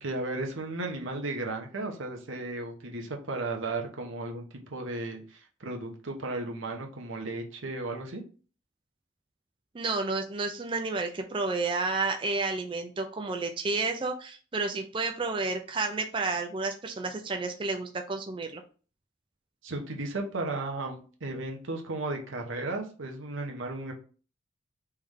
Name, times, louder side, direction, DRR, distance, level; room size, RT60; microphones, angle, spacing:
voice 1, 0.0-4.4 4.7-8.2 19.6-23.9, right 2 dB, 90° right, 3 dB, 0.9 m, -35 dB
voice 2, 9.7-18.6, right 3 dB, 25° right, 5 dB, 0.4 m, -31 dB
3.5 x 3.2 x 3.6 m, 0.38 s
head